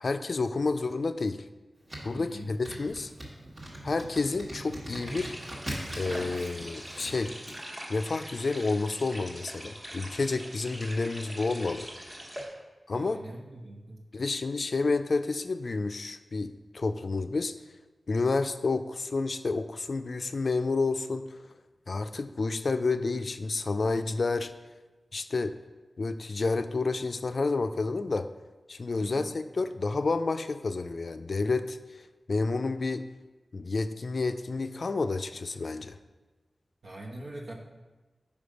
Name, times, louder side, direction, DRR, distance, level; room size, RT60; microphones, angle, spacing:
voice 1, 0.0-1.4 2.0-3.1 3.8-5.3 5.9-7.3 7.9-11.9 12.9-13.2 14.1-17.5 18.1-21.4 21.9-24.5 25.1-25.6 26.0-28.3 28.7-32.0 32.3-33.1 33.5-36.0, left 3 dB, 60° left, 9 dB, 0.3 m, -30 dB
sound 1, 1.9-7.6, right 1 dB, 50° right, 1.5 m, -40 dB
voice 2, 2.1-2.5 12.9-14.0 29.0-29.3 36.8-37.5, right 1 dB, 90° right, -1 dB, 1.0 m, -43 dB
sound 2, 5.1-12.4, equal, 30° right, 1.2 m, -43 dB
5.0 x 5.0 x 5.1 m, 1.2 s
wide cardioid pair, 95°, 0 cm